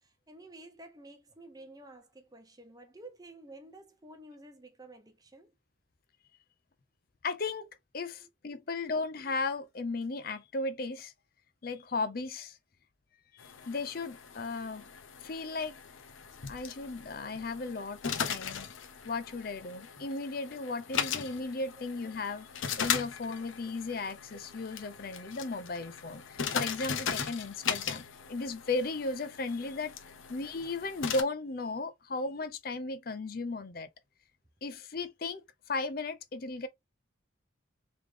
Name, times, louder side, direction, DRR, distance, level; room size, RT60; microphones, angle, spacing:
voice 1, 0.0-5.5 8.2-8.3 16.7-16.8 17.9-18.0 19.2-19.3, right 2 dB, 20° right, 0.7 m, -52 dB
voice 2, 7.2-7.7 7.9-11.1 11.6-12.6 13.4-14.9 15.2-15.8 16.5-18.7 19.0-22.5 22.8-28.0 28.3-29.9 30.3-33.9 34.6-35.4 35.7-36.7, left 3 dB, 50° left, 0.5 m, -35 dB
sound 1, 13.4-31.2, left 7 dB, 85° left, 0.7 m, -38 dB
3.5 x 3.2 x 3.2 m
head